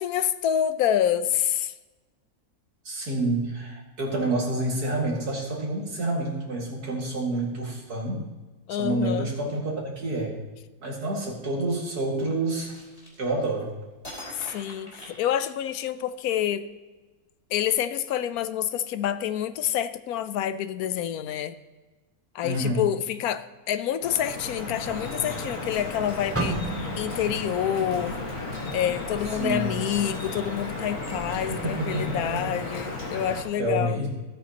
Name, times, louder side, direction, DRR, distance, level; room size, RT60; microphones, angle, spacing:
voice 1, 0.0-1.7 8.7-9.3 14.3-16.7 17.5-21.6 22.3-26.6 27.0-28.2 28.7-34.0, left 10 dB, 75° left, 13 dB, 1.0 m, -27 dB
voice 2, 2.8-8.2 8.8-10.4 10.8-12.7 13.2-13.7 22.4-22.8 29.4-29.7 31.3-32.5 33.6-34.1, right 2 dB, 85° right, -2 dB, 2.7 m, -28 dB
sound 1, 12.5-13.6 14.0-15.9, left 1 dB, 25° left, 2.7 m, -43 dB
Drip, 24.0-33.4, left 2 dB, 60° left, 2.1 m, -34 dB
sound 2, 26.4-30.4 30.7-31.0 31.7-32.0, right 2 dB, 20° right, 0.4 m, -35 dB
15.0 x 8.5 x 2.9 m, 1.2 s
omnidirectional pair, 1.6 m